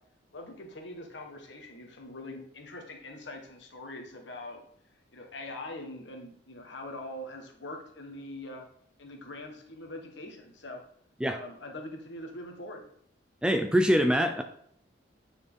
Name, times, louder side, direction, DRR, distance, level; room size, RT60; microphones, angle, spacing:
voice 1, 0.3-4.6 5.1-8.6 9.0-10.8 11.2-12.8, left 1 dB, 65° left, 2 dB, 1.3 m, -43 dB
voice 2, 13.4-14.4, equal, 5° right, 6 dB, 0.4 m, -24 dB
9.7 x 4.3 x 3.6 m, 0.65 s
head